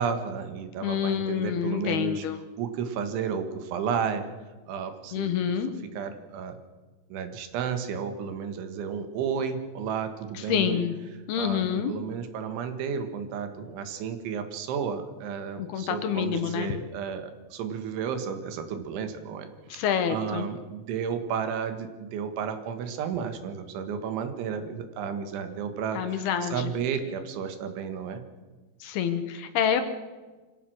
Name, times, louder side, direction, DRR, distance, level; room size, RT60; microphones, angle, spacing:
voice 1, 0.0-2.3 2.6-4.3 4.7-6.6 7.1-10.8 11.4-28.2, right 7 dB, 85° right, 8 dB, 4.1 m, -32 dB
voice 2, 0.8-2.4 5.1-5.7 10.5-10.9 11.3-11.9 15.7-16.7 19.7-20.5 25.9-26.7 28.8-29.8, left 8 dB, 70° left, 9 dB, 2.7 m, -27 dB
25.0 x 16.5 x 6.5 m, 1.3 s
omnidirectional pair, 5.3 m